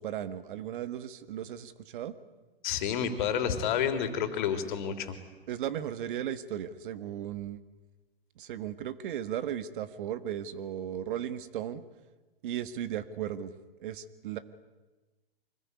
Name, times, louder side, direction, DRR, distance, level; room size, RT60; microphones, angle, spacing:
voice 1, 0.0-2.1 5.5-7.6 8.4-11.8 12.4-13.5 13.8-14.4, right 10 dB, 55° right, 13 dB, 1.8 m, -36 dB
voice 2, 2.6-5.1, left 8 dB, 50° left, 9 dB, 3.5 m, -29 dB
25.0 x 20.5 x 9.7 m, 1.2 s
hypercardioid pair, 125°, 30 cm